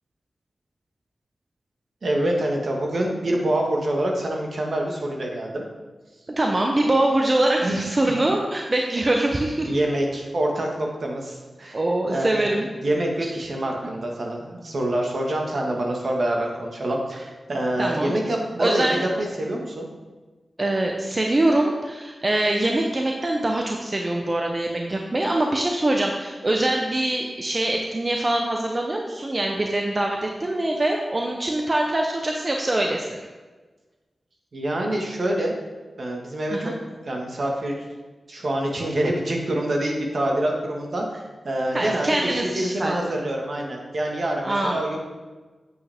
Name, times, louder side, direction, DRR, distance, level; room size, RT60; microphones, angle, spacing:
voice 1, 2.0-5.6 7.6-7.8 8.9-9.0 9.6-11.8 12.1-12.5 12.8-19.9 34.5-35.5 36.0-36.7 37.0-37.8 38.3-45.0, right 1 dB, 60° right, 0 dB, 1.6 m, -26 dB
voice 2, 6.3-9.7 11.7-12.7 17.8-18.1 18.6-19.1 20.6-33.2 36.5-36.7 41.7-42.9 44.4-44.8, right 1 dB, 35° right, 1 dB, 0.8 m, -23 dB
8.2 x 8.1 x 3.6 m, 1.3 s
wide cardioid pair, 80°, 0 cm